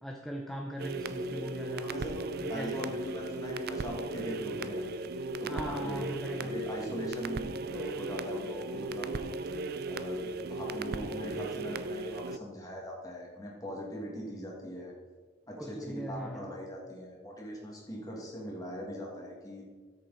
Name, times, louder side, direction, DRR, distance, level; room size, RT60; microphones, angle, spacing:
voice 1, 0.0-1.9 2.4-2.7 5.5-6.6 15.6-16.5, equal, ahead, 1 dB, 0.6 m, -39 dB
sound 1, 0.8-12.4, right 2 dB, 50° right, 0.4 m, -36 dB
voice 2, 1.8-4.8 5.4-6.1 6.4-9.2 9.9-14.9 15.5-19.6, equal, 20° left, -2 dB, 2.2 m, -41 dB
13.5 x 6.7 x 4.1 m, 1.5 s
head